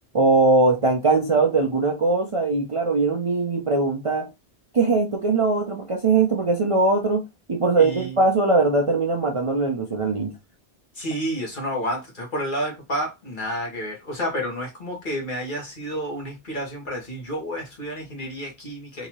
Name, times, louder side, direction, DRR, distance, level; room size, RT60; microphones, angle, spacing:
voice 1, 0.1-4.3 4.7-7.2 7.5-10.3, right 3 dB, 40° right, 0.5 m, -21 dB
voice 2, 7.8-8.2 10.9-19.1, equal, 50° left, 1.6 m, -30 dB
3.8 x 2.7 x 2.9 m
omnidirectional pair, 1.1 m